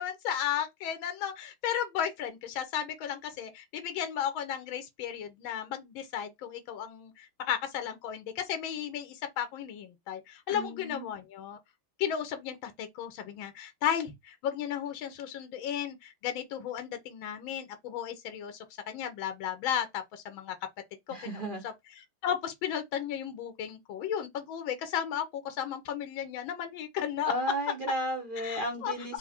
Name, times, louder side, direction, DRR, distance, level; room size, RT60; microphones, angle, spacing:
voice 1, 0.0-11.6 12.0-18.6 18.9-20.5 21.2-21.4 22.2-27.3 28.4-28.9, left 9 dB, 85° left, 1.6 m, -34 dB
voice 2, 10.5-11.1 21.1-21.6 27.3-29.2, right 1 dB, 50° right, 0.6 m, -34 dB
4.6 x 2.1 x 4.2 m
omnidirectional pair, 2.2 m